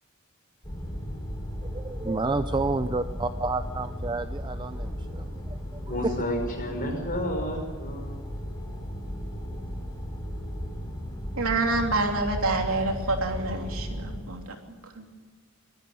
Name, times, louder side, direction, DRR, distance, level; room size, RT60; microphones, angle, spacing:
sound 1, 0.6-14.2, equal, 20° left, 3.2 m, -35 dB
voice 1, 1.7-6.1, right 3 dB, 20° right, 10 dB, 0.5 m, -30 dB
voice 2, 5.9-8.2, left 1 dB, 40° left, 3 dB, 5.8 m, -31 dB
voice 3, 11.3-15.1, right 2 dB, 75° right, 2 dB, 3.1 m, -28 dB
22.0 x 13.5 x 9.7 m, 1.5 s
head